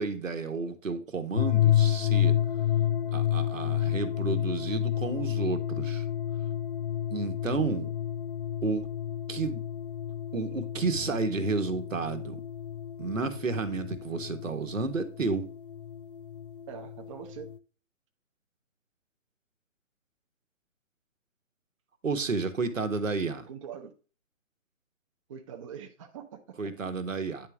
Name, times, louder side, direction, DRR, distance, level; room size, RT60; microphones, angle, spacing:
voice 1, 0.0-2.3 3.1-6.0 7.1-7.9 8.6-8.8 9.3-9.6 10.3-12.4 13.0-15.4 22.0-23.5 26.6-27.5, right 4 dB, 85° right, 1.3 m, -31 dB
sound 1, 1.3-17.6, left 11 dB, 45° left, 0.4 m, -30 dB
voice 2, 16.7-17.5 23.5-23.9 25.3-26.7, right 7 dB, 25° right, 0.6 m, -43 dB
9.6 x 3.6 x 3.5 m
figure-of-eight pair, 140°, 38 cm